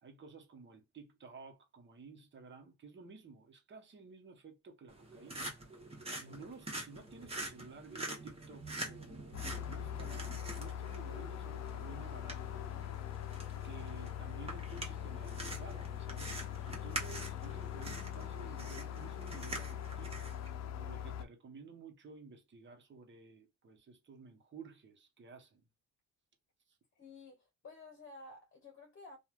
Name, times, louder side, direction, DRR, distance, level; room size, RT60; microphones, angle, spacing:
voice 1, 0.0-5.5 6.1-12.6 13.6-20.3 20.8-25.7 26.7-26.8, right 4 dB, 40° right, 1.0 m, -54 dB
sound 1, 4.9-20.5, right 2 dB, 20° right, 1.1 m, -46 dB
sound 2, 9.3-21.2, left 10 dB, 60° left, 0.5 m, -42 dB
voice 2, 26.9-29.2, left 3 dB, 40° left, 1.0 m, -53 dB
3.0 x 2.4 x 2.4 m
cardioid pair, 90°, 30 cm